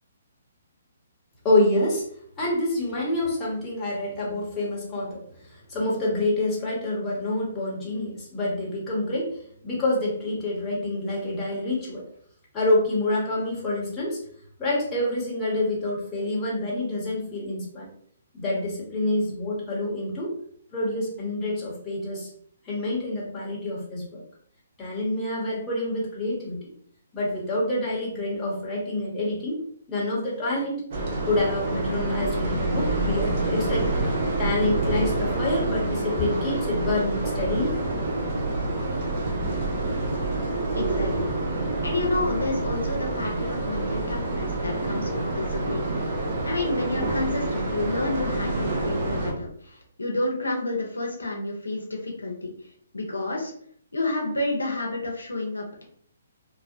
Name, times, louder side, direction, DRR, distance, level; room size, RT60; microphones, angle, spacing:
voice 1, 1.4-2.0 2.4-12.0 12.5-14.2 14.6-17.9 18.3-20.3 20.7-22.3 22.6-24.2 24.8-26.6 27.1-29.6 29.9-30.8 31.3-33.9 34.4-37.8, left 1 dB, 15° left, -6 dB, 1.0 m, -27 dB
sound 1, 30.9-49.3, right 2 dB, 45° right, 0.7 m, -27 dB
voice 2, 40.7-45.9 46.2-52.5 52.9-53.5 53.9-55.8, left 2 dB, 90° left, 0 dB, 0.6 m, -30 dB
2.6 x 2.0 x 2.6 m, 0.63 s
figure-of-eight pair, 135°, 0 cm